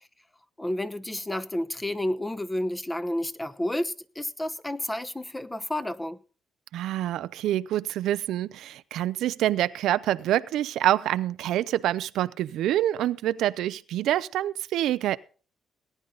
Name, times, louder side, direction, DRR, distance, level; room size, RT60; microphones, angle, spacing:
voice 1, 0.6-6.2, left 1 dB, 10° left, 1.0 m, -30 dB
voice 2, 6.7-15.2, right 13 dB, 85° right, 0.5 m, -26 dB
18.5 x 10.0 x 4.0 m
cardioid pair, 90°, 0 cm